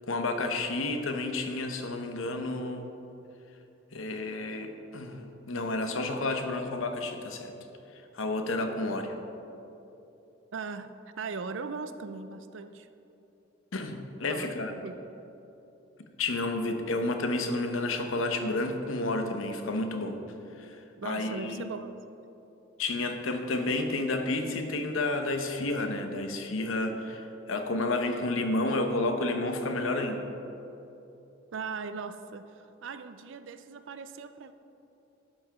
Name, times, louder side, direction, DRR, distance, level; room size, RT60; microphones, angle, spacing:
voice 1, 0.1-2.9 3.9-7.5 8.1-9.1 13.7-14.7 16.2-20.2 20.6-20.8 21.0-21.7 22.8-30.2, left 2 dB, 75° left, 6 dB, 0.8 m, -31 dB
voice 2, 10.5-12.9 14.2-15.0 21.0-22.0 31.5-34.5, right 4 dB, 65° right, 11 dB, 0.4 m, -39 dB
12.0 x 5.8 x 4.9 m, 2.9 s
head